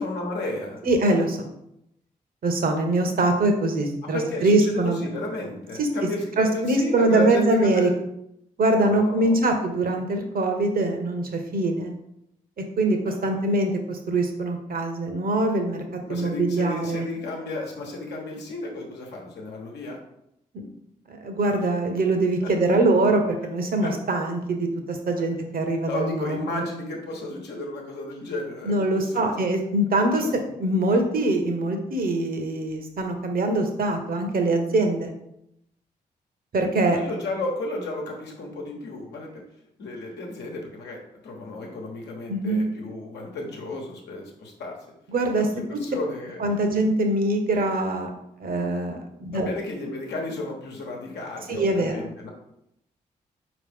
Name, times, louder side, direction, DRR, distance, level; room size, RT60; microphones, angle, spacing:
voice 1, 0.0-0.9 4.0-8.0 8.9-9.5 13.1-13.4 16.1-20.0 22.4-22.5 23.8-23.9 25.9-29.3 36.9-39.4 39.8-44.8 45.5-46.4 49.3-52.3, left 2 dB, 75° left, 0 dB, 1.0 m, -33 dB
voice 2, 0.9-1.5 2.4-5.0 5.8-5.9 6.4-7.9 8.6-11.9 12.8-15.8 16.1-17.1 20.5-20.7 21.1-26.6 28.6-30.3 30.6-35.1 36.5-37.0 42.3-42.7 45.1-45.5 46.4-48.1 48.4-49.5 51.5-52.0, right 2 dB, 55° right, 5 dB, 0.9 m, -23 dB
4.6 x 3.0 x 3.5 m, 0.80 s
hypercardioid pair, 40°, 18 cm